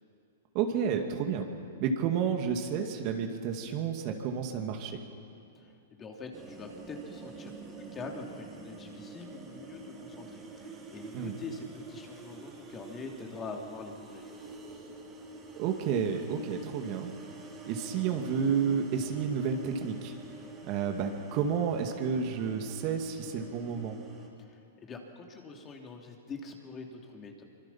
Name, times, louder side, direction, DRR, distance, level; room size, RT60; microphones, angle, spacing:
voice 1, 0.5-1.5 1.8-5.0 11.1-11.3 15.6-17.1 17.6-20.1 20.7-24.0, right 6 dB, 40° right, 4 dB, 2.5 m, -31 dB
voice 2, 5.6-14.4 24.4-27.4, left 4 dB, 20° left, 2 dB, 3.1 m, -44 dB
sound 1, 6.3-24.3, right 3 dB, 20° right, 4.1 m, -47 dB
25.0 x 24.0 x 5.8 m, 2.6 s
hypercardioid pair, 125°, 0 cm